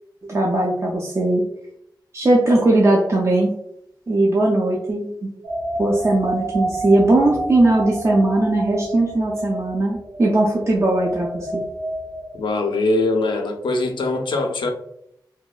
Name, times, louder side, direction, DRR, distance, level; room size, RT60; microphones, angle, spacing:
voice 1, 0.3-1.4 2.1-3.5 4.1-5.3 5.8-11.6, right 2 dB, 35° right, -3 dB, 0.4 m, -19 dB
sound 1, 5.4-12.8, equal, 85° right, 0.5 m, -30 dB
voice 2, 12.3-14.7, left 2 dB, 80° left, 3 dB, 0.4 m, -22 dB
2.7 x 2.1 x 2.3 m, 0.76 s
wide cardioid pair, 120°, 8 cm